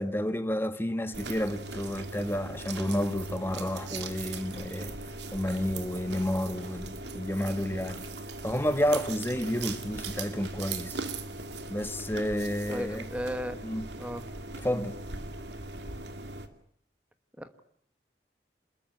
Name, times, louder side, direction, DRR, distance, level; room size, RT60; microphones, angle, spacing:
voice 1, 0.0-4.9 5.3-8.1 8.4-11.0 11.7-13.0 13.6-13.8 14.6-15.0, equal, 15° left, 1.6 m, -30 dB
sound 1, 1.1-16.5, right 3 dB, 75° right, 2.4 m, -39 dB
voice 2, 12.7-13.6 14.0-14.2 17.4-17.6, equal, 10° right, 1.3 m, -35 dB
27.5 x 21.0 x 9.4 m
head